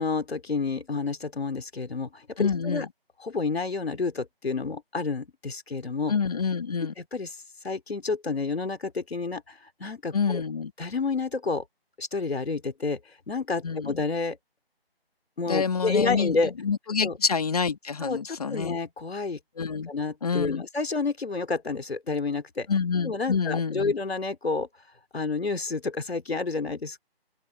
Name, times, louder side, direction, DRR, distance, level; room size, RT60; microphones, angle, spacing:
voice 1, 0.0-2.9 3.2-6.1 7.0-7.4 7.6-10.4 10.8-11.6 12.0-13.0 13.3-14.4 15.4-16.5 17.0-17.2 18.0-19.4 19.9-22.7 23.0-24.7 25.1-27.0, left 4 dB, 85° left, 3.1 m, -29 dB
voice 2, 2.4-2.9 6.1-6.9 10.1-10.7 13.6-14.0 15.5-16.4 16.6-18.8 19.6-19.9 20.2-20.6 22.7-23.9, left 5 dB, 40° left, 2.0 m, -27 dB
open air
figure-of-eight pair, 170°, 30 cm